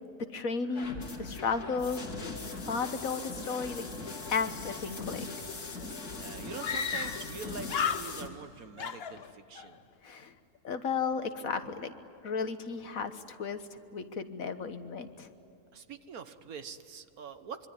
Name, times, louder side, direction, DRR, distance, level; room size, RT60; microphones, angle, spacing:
voice 1, 0.2-2.0 2.4-3.8 4.3-5.3 10.0-10.3 10.6-11.9 12.2-15.3, left 5 dB, 65° left, 9 dB, 1.7 m, -34 dB
sound 1, 0.6-8.0, right 1 dB, 45° right, 7.9 m, -55 dB
sound 2, 0.8-8.3, left 3 dB, 85° left, 2.8 m, -40 dB
Screaming, 5.8-5.9 6.6-7.4 7.7-8.5 8.8-9.7, left 7 dB, 45° left, 1.0 m, -34 dB
voice 2, 6.2-9.8 15.7-17.7, right 6 dB, 75° right, 10 dB, 1.7 m, -44 dB
25.5 x 24.0 x 9.5 m, 2.7 s
omnidirectional pair, 1.6 m